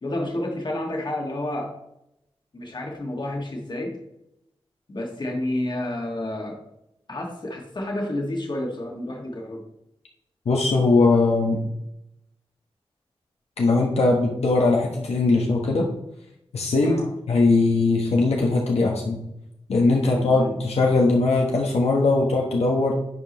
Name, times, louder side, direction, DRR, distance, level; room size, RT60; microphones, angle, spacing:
voice 1, 0.0-1.7 2.5-4.0 4.9-6.6 7.1-9.6 16.8-17.1 20.0-20.6, left 1 dB, 45° left, 1 dB, 1.8 m, -30 dB
voice 2, 10.4-11.6 13.6-15.9 16.5-19.2 19.7-22.9, left 3 dB, 85° left, -1 dB, 1.2 m, -20 dB
10.5 x 4.8 x 3.0 m, 0.82 s
wide cardioid pair, 105°, 10 cm